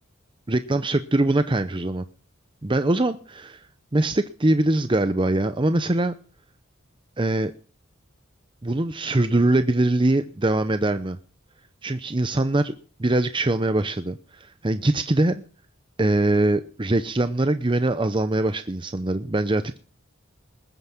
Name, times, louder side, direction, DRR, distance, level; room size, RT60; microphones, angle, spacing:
voice 1, 0.5-2.0 2.6-3.7 3.9-6.2 7.2-7.5 8.6-11.2 11.8-12.7 13.0-15.4 16.0-19.8, right 2 dB, 25° right, 10 dB, 0.7 m, -22 dB
20.5 x 9.8 x 5.9 m, 0.40 s
head